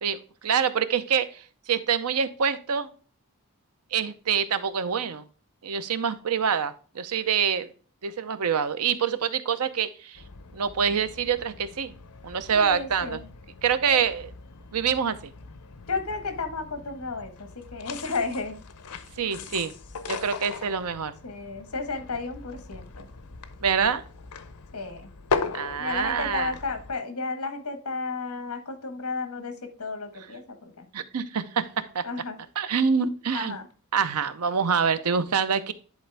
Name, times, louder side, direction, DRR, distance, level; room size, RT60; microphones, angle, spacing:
voice 1, 0.0-2.9 3.9-5.2 5.6-7.7 8.0-10.2 10.5-11.9 12.2-13.2 13.6-14.3 14.7-15.3 19.2-19.7 20.1-21.1 23.6-24.0 25.5-26.5 30.9-32.0 32.6-33.6 33.9-35.7, right 7 dB, 80° right, 12 dB, 0.7 m, -26 dB
sound 1, 10.1-26.9, left 4 dB, 90° left, 0.7 m, -38 dB
voice 2, 12.5-13.2 13.9-14.1 15.9-18.6 21.2-23.1 24.7-25.1 25.8-30.9 32.0-32.4 33.3-33.7, left 3 dB, 75° left, 7 dB, 1.5 m, -33 dB
10.5 x 4.1 x 3.4 m, 0.39 s
head